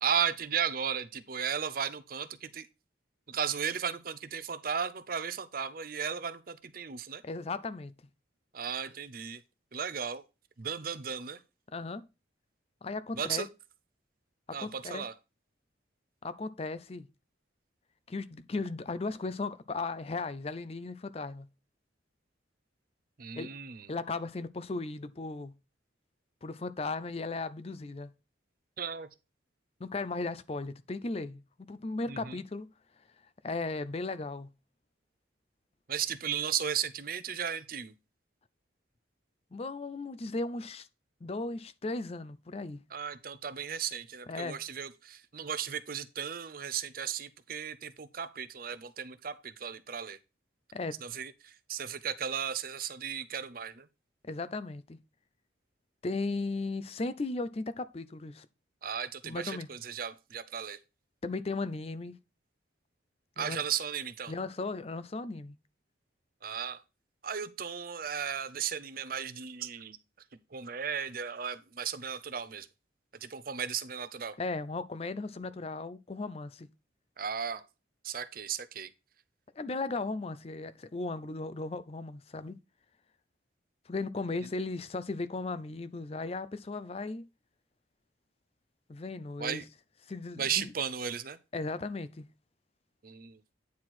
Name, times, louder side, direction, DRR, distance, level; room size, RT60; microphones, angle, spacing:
voice 1, 0.0-2.7 3.3-7.2 8.5-9.4 9.7-10.2 10.6-11.4 13.1-13.5 14.5-15.1 23.2-23.9 28.8-29.1 32.1-32.4 35.9-37.9 42.9-50.2 51.0-53.9 58.8-60.8 63.4-64.3 66.4-66.8 67.2-70.0 70.5-72.7 73.2-74.4 77.2-77.6 78.0-78.9 89.4-89.6 90.4-91.4 93.0-93.4, right 7 dB, 50° right, 0.6 m, -35 dB
voice 2, 7.2-7.9 11.7-12.0 12.8-13.5 14.6-15.0 16.2-17.1 18.1-21.5 23.4-23.5 23.9-25.5 26.4-28.1 29.8-31.4 31.7-32.7 33.4-34.5 39.5-40.9 41.2-42.8 44.3-44.6 50.7-51.0 54.2-55.0 56.0-58.5 59.2-59.7 61.2-62.1 63.4-63.6 64.3-65.6 74.4-76.7 79.6-82.5 83.9-87.2 88.9-89.6 90.1-90.7 91.5-92.3, left 3 dB, 30° left, 0.4 m, -36 dB
9.4 x 4.4 x 4.2 m
head